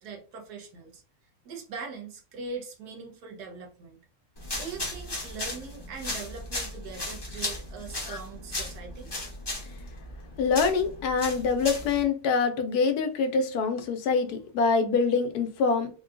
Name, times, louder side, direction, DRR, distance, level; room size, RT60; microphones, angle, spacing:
voice 1, 0.0-1.0 1.4-4.0 4.6-9.1, right 4 dB, 80° right, 1.3 m, -41 dB
sound 1, 4.4-12.0, left 1 dB, 25° left, 0.5 m, -36 dB
voice 2, 10.4-15.9, left 5 dB, 80° left, 1.2 m, -25 dB
3.7 x 2.3 x 2.5 m
omnidirectional pair, 1.6 m